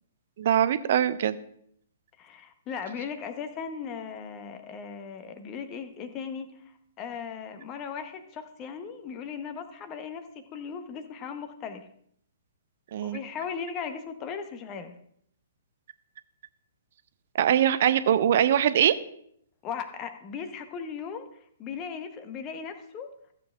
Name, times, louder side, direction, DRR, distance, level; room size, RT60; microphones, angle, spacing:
voice 1, 0.4-1.4 12.9-13.2 17.4-18.9, right 10 dB, 50° right, 13 dB, 0.6 m, -22 dB
voice 2, 2.2-11.9 13.0-14.9 19.6-23.1, left 6 dB, 25° left, 8 dB, 1.0 m, -38 dB
15.0 x 7.7 x 2.5 m, 0.67 s
figure-of-eight pair, 120°, 0 cm